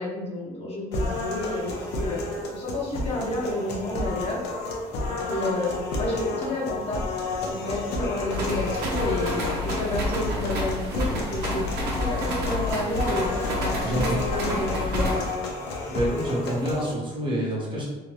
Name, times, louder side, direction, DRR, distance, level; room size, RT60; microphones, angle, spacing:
voice 1, 0.0-4.4 5.3-5.7 5.9-7.0 7.4-9.3 9.6-11.6 12.0-15.2, left 1 dB, 35° left, -4 dB, 0.8 m, -30 dB
sound 1, 0.9-16.9, left 2 dB, 85° left, 0.7 m, -31 dB
sound 2, 8.3-15.3, left 1 dB, 75° right, 0.8 m, -29 dB
voice 2, 13.8-14.2 15.8-17.9, equal, 30° right, -4 dB, 1.0 m, -27 dB
2.8 x 2.5 x 3.1 m, 1.2 s
cardioid pair, 110°, 17 cm